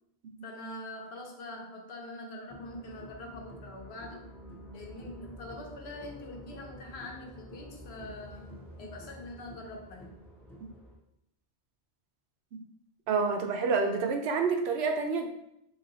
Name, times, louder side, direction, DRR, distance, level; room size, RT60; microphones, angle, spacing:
voice 1, 0.4-4.3 4.7-10.2, left 1 dB, 70° left, 1 dB, 1.0 m, -44 dB
sound 1, 2.5-11.0, equal, ahead, 0.5 m, -49 dB
voice 2, 13.1-15.3, right 4 dB, 75° right, 5 dB, 0.8 m, -28 dB
3.2 x 2.7 x 3.8 m, 0.78 s
omnidirectional pair, 1.1 m